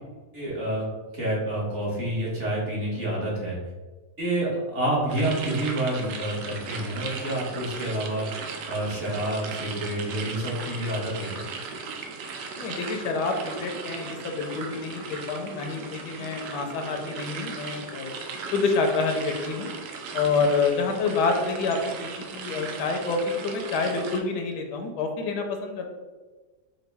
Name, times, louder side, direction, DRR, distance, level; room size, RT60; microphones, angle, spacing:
voice 1, 0.3-0.9 1.1-3.6 4.2-11.4, right 1 dB, 45° right, -6 dB, 1.5 m, -28 dB
sound 1, 5.1-24.2, right 4 dB, 85° right, 1.2 m, -37 dB
voice 2, 12.6-18.1 18.5-19.7 20.1-25.9, left 4 dB, 80° left, 4 dB, 1.2 m, -27 dB
5.2 x 2.2 x 3.3 m, 1.3 s
omnidirectional pair, 1.8 m